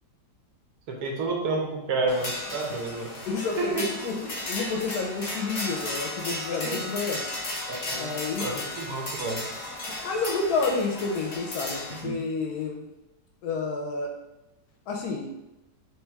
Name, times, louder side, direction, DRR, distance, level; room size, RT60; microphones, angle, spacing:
voice 1, 0.9-3.1 3.6-3.8 6.6-6.8 7.7-8.1 8.4-9.4 12.0-12.2, right 3 dB, 70° right, 0 dB, 1.1 m, -30 dB
sound 1, 2.1-12.0, left 2 dB, 40° left, 0.5 m, -35 dB
voice 2, 3.2-7.2 7.9-8.6 9.9-12.8 13.4-14.1 14.9-15.3, left 4 dB, 70° left, 1 dB, 1.0 m, -30 dB
3.2 x 3.1 x 3.4 m, 0.97 s
omnidirectional pair, 1.9 m